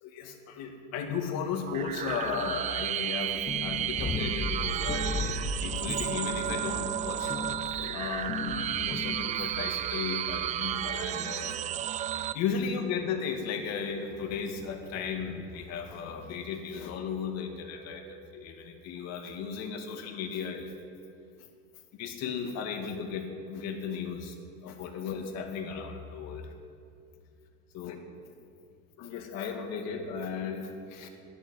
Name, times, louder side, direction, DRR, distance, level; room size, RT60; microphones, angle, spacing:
voice 1, 0.0-7.4 7.8-11.6 12.3-20.7 21.9-24.4 24.6-26.5 27.7-28.0 28.2-28.3 29.0-31.1, left 6 dB, 50° left, 4 dB, 2.2 m, -35 dB
sound 1, 1.7-12.3, right 11 dB, 25° right, 0.4 m, -33 dB
sound 2, 3.5-9.7, left 3 dB, 15° left, 1.0 m, -36 dB
12.0 x 10.0 x 9.7 m, 2.5 s
supercardioid pair, 140°, 33 cm